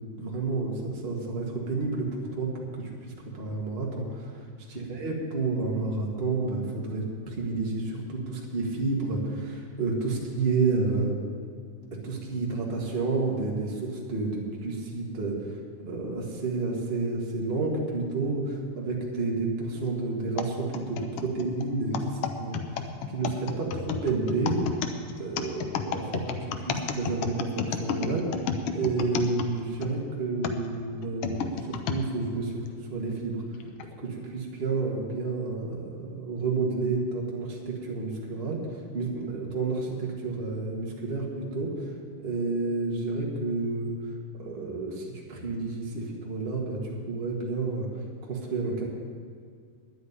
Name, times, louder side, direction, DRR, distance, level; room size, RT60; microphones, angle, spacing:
voice 1, 0.2-11.2 11.9-22.0 22.4-24.6 25.2-28.3 28.7-33.4 33.8-41.9 42.2-48.8, right 3 dB, 25° right, -2 dB, 1.6 m, -30 dB
sound 1, 20.4-29.9 30.4-32.0 32.7-32.8 33.6-33.9, left 7 dB, 80° left, 1.3 m, -32 dB
10.5 x 8.4 x 9.5 m, 2.1 s
omnidirectional pair, 3.6 m